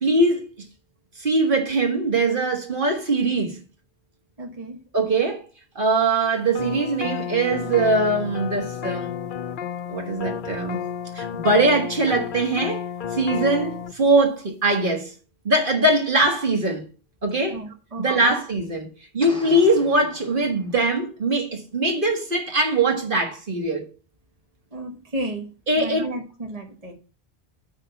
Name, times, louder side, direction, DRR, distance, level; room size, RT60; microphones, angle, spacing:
voice 1, 0.0-0.5 1.2-3.6 4.9-5.4 5.8-9.1 9.9-10.8 11.1-12.8 13.1-15.1 15.5-16.8 17.2-17.6 18.0-18.9 19.1-23.9 25.7-26.1, right 2 dB, 55° right, 1.8 m, -21 dB
voice 2, 4.4-4.8 17.5-18.3 24.7-25.4 25.8-26.9, right 1 dB, 35° right, 1.4 m, -33 dB
sound 1, 6.5-13.9, left 8 dB, 60° left, 0.7 m, -31 dB
sound 2, 19.2-21.1, left 1 dB, 5° left, 1.8 m, -43 dB
9.9 x 3.6 x 6.8 m
omnidirectional pair, 1.1 m